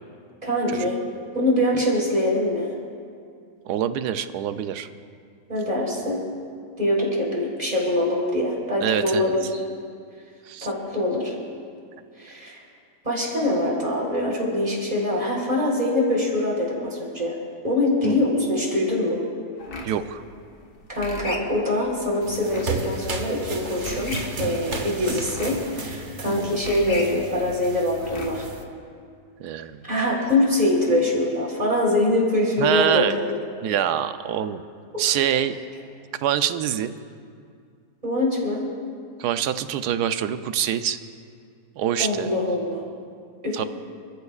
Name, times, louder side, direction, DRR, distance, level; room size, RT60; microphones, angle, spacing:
voice 1, 0.4-1.0 1.3-2.7 5.5-6.2 6.8-9.6 10.6-11.3 12.2-12.6 13.0-17.3 17.6-19.2 20.9-28.5 29.8-33.4 34.9-35.2 38.0-38.7 42.0-42.8 43.4-43.6, left 1 dB, 25° right, -3 dB, 3.9 m, -24 dB
voice 2, 3.7-4.9 8.8-9.3 10.5-10.7 18.0-18.2 19.8-20.2 26.3-26.6 29.4-29.8 32.6-33.1 33.6-34.6 35.0-35.5 36.2-36.9 39.2-41.0 41.8-42.3 43.5-43.6, right 10 dB, 75° right, 10 dB, 1.2 m, -25 dB
sound 1, 19.6-28.6, left 2 dB, 65° left, 1.9 m, -38 dB
sound 2, 22.2-28.6, right 3 dB, 45° right, 1.3 m, -34 dB
29.0 x 14.0 x 2.4 m, 2.3 s
omnidirectional pair, 1.8 m